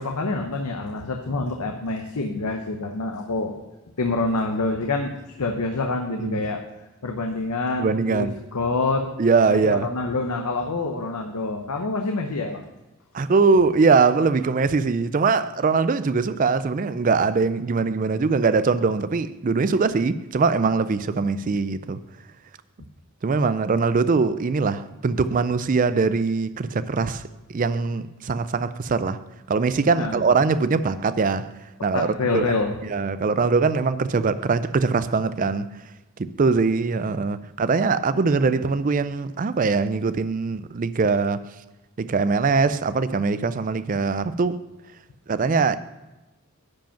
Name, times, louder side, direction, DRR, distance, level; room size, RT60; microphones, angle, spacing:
voice 1, 0.0-3.6 4.0-5.1 5.4-6.6 7.0-9.1 9.5-12.7 30.0-30.2 31.9-32.8, left 3 dB, 90° left, 0.8 m, -26 dB
voice 2, 7.8-8.4 9.2-9.9 13.1-22.0 23.2-27.2 27.5-29.2 29.5-31.5 31.8-32.5 32.8-35.7 36.2-41.5 42.0-44.6 45.3-45.8, right 4 dB, 35° right, 0.4 m, -22 dB
10.5 x 5.1 x 5.8 m
head